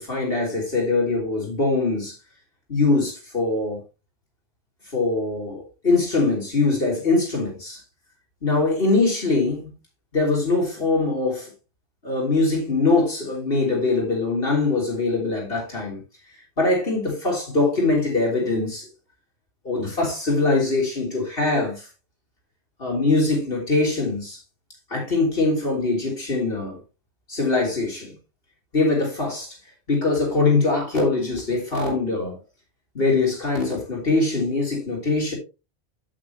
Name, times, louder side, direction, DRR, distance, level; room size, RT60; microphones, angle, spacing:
voice 1, 0.0-2.1 2.7-3.8 4.9-7.8 8.4-9.7 10.1-11.5 12.0-16.0 16.6-18.9 19.6-21.9 22.8-24.4 24.9-26.8 27.3-28.1 28.7-29.5 29.9-32.4 32.9-35.3, left 3 dB, 60° left, 3.5 m, -22 dB
9.0 x 8.5 x 3.1 m
omnidirectional pair, 1.1 m